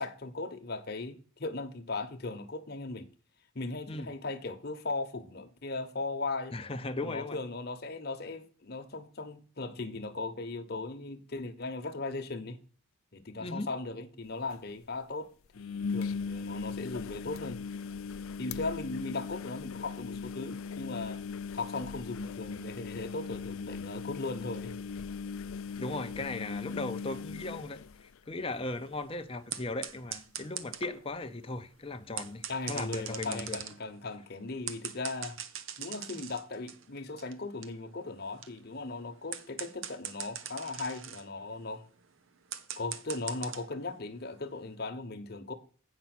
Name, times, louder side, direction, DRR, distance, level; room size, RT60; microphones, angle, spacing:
voice 1, 0.0-3.1 3.5-6.6 7.0-12.6 13.1-15.3 15.6-17.6 18.4-21.2 21.5-24.8 32.5-35.4 35.8-41.8 42.8-45.5, left 3 dB, 50° left, 1.1 m, -38 dB
voice 2, 6.5-7.4 13.4-13.7 25.8-33.6, left 2 dB, 25° left, 0.7 m, -37 dB
sound 1, 14.3-14.4 14.5-14.6 15.5-28.6 29.0-29.4 29.7-29.8 31.6-31.7, left 5 dB, 80° left, 0.4 m, -39 dB
sound 2, 28.8-31.1 32.0-43.9 44.3-44.7, right 9 dB, 70° right, 0.9 m, -43 dB
8.3 x 5.6 x 6.0 m
head